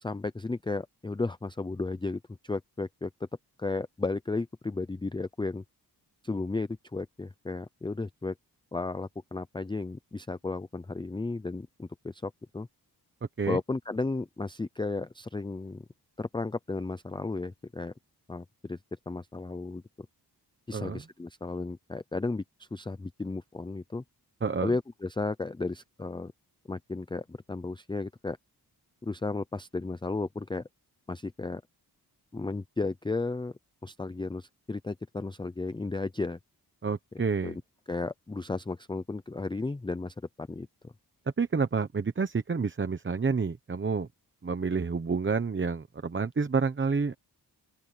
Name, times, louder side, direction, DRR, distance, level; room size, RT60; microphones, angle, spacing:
voice 1, 0.0-3.1 3.6-5.6 6.2-8.3 8.7-12.7 13.5-15.8 16.2-17.9 18.3-18.8 19.1-19.8 20.7-24.0 24.6-26.3 26.7-28.4 29.0-30.6 31.1-31.6 32.3-33.5 33.8-36.4 37.4-37.6 37.9-40.9, left 3 dB, 10° left, 0.4 m, -34 dB
voice 2, 24.4-24.7 36.8-37.6 41.4-44.1 44.4-47.1, right 5 dB, 30° right, 0.9 m, -29 dB
open air
wide cardioid pair, 165°, 40 cm